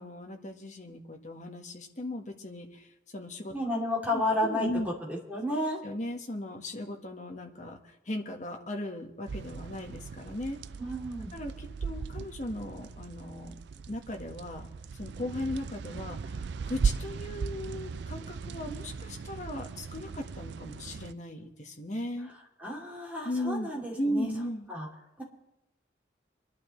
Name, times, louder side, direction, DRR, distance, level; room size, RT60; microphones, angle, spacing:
voice 1, 0.0-2.9 3.1-3.7 4.1-4.9 5.8-10.6 11.3-13.5 13.9-14.7 15.0-16.2 16.6-22.3 23.2-23.7 24.0-24.7, left 1 dB, 40° left, 3 dB, 1.5 m, -37 dB
voice 2, 3.5-4.7 5.1-5.8 10.8-11.3 22.6-24.3 24.7-24.9 25.2-25.3, left 1 dB, 10° right, -3 dB, 3.0 m, -31 dB
sound 1, 9.3-21.1, right 5 dB, 70° right, 0.4 m, -37 dB
26.0 x 11.5 x 3.3 m, 0.92 s
head